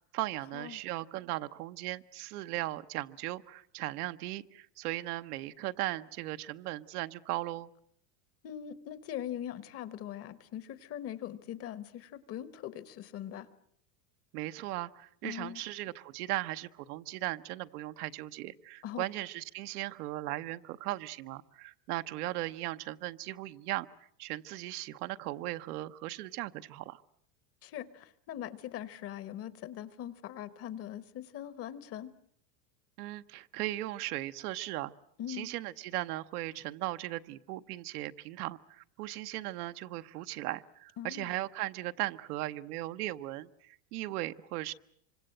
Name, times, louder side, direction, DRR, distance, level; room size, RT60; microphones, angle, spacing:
voice 1, 0.0-7.7 14.3-23.9 24.2-27.0 33.0-34.9 35.3-44.7, right 17 dB, 70° right, 11 dB, 1.0 m, -37 dB
voice 2, 8.4-13.5 15.2-15.6 18.8-19.0 27.6-32.1 35.2-35.5 41.0-41.3, left 11 dB, 30° left, 16 dB, 1.0 m, -41 dB
25.5 x 25.0 x 7.8 m, 0.67 s
supercardioid pair, 155°, 48 cm